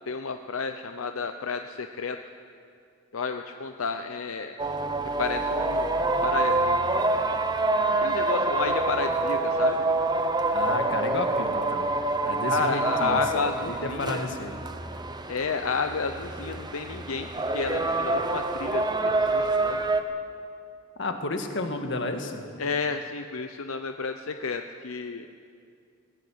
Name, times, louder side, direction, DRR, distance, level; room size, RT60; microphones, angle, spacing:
voice 1, 0.1-2.2 3.1-4.6 5.2-6.9 8.0-9.8 12.5-14.3 15.3-19.8 22.6-25.3, left 5 dB, 85° left, 7 dB, 0.7 m, -31 dB
sound 1, 4.6-20.0, right 2 dB, 20° right, 0.9 m, -26 dB
voice 2, 10.5-11.9 12.2-14.5 21.0-22.4, left 2 dB, 60° left, 5 dB, 1.9 m, -32 dB
18.5 x 16.5 x 8.6 m, 2.4 s
head